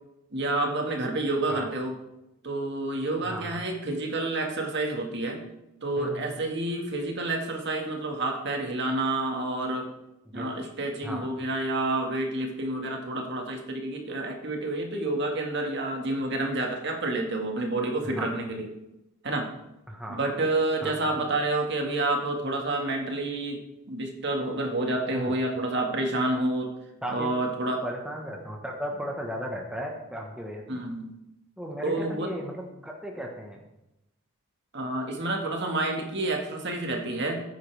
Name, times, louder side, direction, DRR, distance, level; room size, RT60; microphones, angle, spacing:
voice 1, 0.3-1.9 2.4-5.4 5.8-9.9 10.3-18.7 19.2-19.5 20.2-23.6 23.9-26.7 27.1-27.8 30.7-31.1 31.8-32.3 34.7-37.4, right 2 dB, 50° right, 2 dB, 1.9 m, -29 dB
voice 2, 3.2-3.7 6.0-6.3 10.2-10.5 11.0-11.3 18.0-18.3 19.9-20.2 20.8-21.2 25.1-25.4 27.0-27.3 27.8-30.8 31.6-33.6, equal, 5° right, -1 dB, 1.3 m, -36 dB
14.0 x 9.5 x 3.5 m, 0.90 s
head